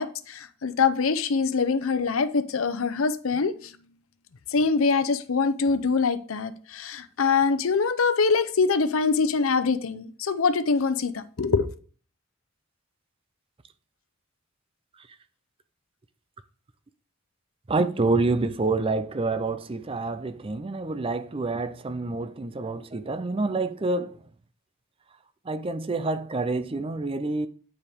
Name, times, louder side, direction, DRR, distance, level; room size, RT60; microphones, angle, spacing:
voice 1, 0.0-3.8 4.5-11.7, left 4 dB, 85° left, 0.6 m, -24 dB
voice 2, 17.7-24.2 25.5-27.5, right 3 dB, 25° right, 0.5 m, -27 dB
9.3 x 5.0 x 3.6 m
head